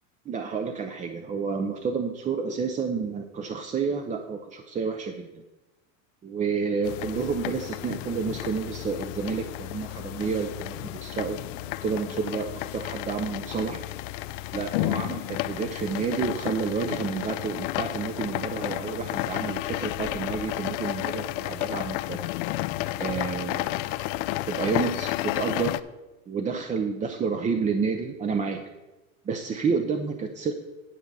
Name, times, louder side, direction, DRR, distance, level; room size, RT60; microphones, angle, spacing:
voice 1, 0.3-5.4 6.2-11.4 11.8-13.8 14.5-22.2 23.0-23.7 24.5-25.8 26.3-28.6 29.2-30.5, right 5 dB, 20° right, 5 dB, 0.6 m, -30 dB
sound 1, 6.8-25.8, left 16 dB, 65° left, 0.6 m, -32 dB
10.0 x 4.6 x 6.8 m, 1.1 s
supercardioid pair, 120°, 41 cm